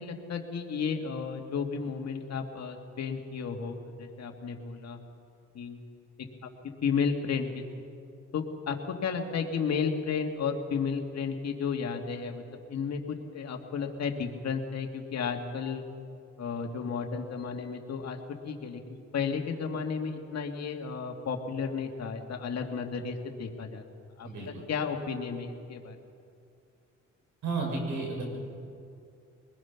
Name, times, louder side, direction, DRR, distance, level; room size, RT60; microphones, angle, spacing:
voice 1, 0.0-5.0 5.5-5.8 6.4-6.5 6.8-7.6 8.3-12.4 12.7-15.8 16.4-18.2 18.4-23.8 24.2-24.3 24.7-26.0, left 6 dB, 60° left, 3 dB, 2.2 m, -33 dB
voice 2, 24.2-24.6 27.4-28.2, right 3 dB, 75° right, 0 dB, 6.6 m, -32 dB
24.0 x 20.5 x 5.9 m, 2.4 s
cardioid pair, 90°, 30 cm